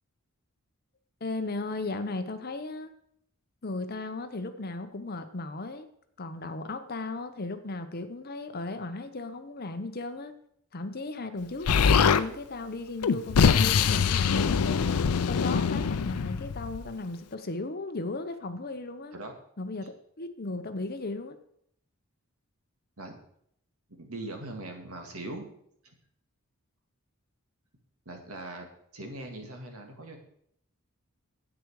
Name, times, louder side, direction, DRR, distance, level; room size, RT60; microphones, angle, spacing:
voice 1, 1.2-2.9 3.6-5.9 6.2-10.3 10.7-14.8 15.3-19.1 19.6-21.4, left 2 dB, 45° left, 9 dB, 0.8 m, -36 dB
Explosion, 11.7-12.2 13.0-16.9, left 6 dB, 85° left, 0.5 m, -23 dB
voice 2, 24.0-25.5 25.8-25.9 28.1-28.7 28.9-30.2, right 2 dB, 75° right, 3 dB, 2.0 m, -40 dB
10.0 x 8.2 x 4.8 m, 0.69 s
head